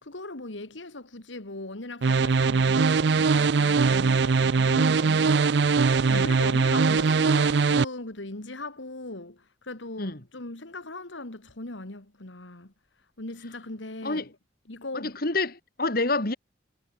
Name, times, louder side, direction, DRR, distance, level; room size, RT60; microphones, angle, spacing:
voice 1, 0.0-12.7 13.2-14.3 14.7-15.2, left 2 dB, 80° left, 2.4 m, -39 dB
sound 1, 2.0-7.8, right 4 dB, 60° right, 0.5 m, -21 dB
voice 2, 14.9-16.4, left 2 dB, 50° left, 2.5 m, -28 dB
head